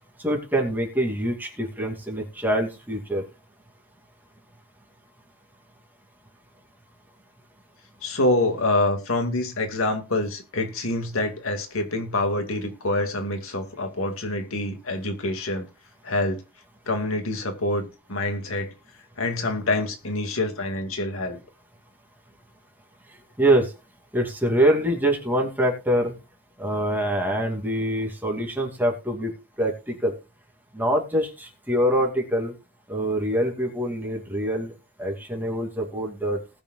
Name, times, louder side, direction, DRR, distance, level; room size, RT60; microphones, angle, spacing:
voice 1, 0.2-3.2 23.4-23.7 24.1-26.1 26.6-29.3 29.6-30.1 30.7-32.5 32.9-34.7 35.0-36.4, right 1 dB, 10° right, 2.6 m, -24 dB
voice 2, 8.0-15.7 16.0-16.4 16.9-18.7 19.2-21.4, left 2 dB, 90° left, 2.1 m, -26 dB
19.0 x 7.0 x 2.4 m
head